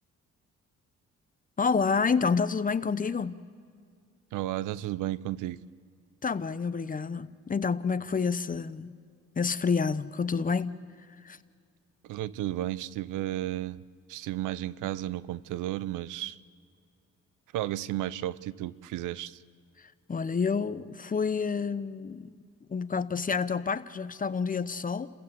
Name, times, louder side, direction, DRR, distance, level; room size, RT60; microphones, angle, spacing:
voice 1, 1.6-3.4 6.2-8.9 9.4-10.8 11.2-11.4 19.8-22.3 22.7-25.1, left 5 dB, 25° left, 0.8 m, -29 dB
voice 2, 4.3-5.6 12.0-13.8 14.1-16.4 17.5-19.4, right 14 dB, 90° right, 0.7 m, -33 dB
30.0 x 15.5 x 6.8 m
cardioid pair, 90°, 30 cm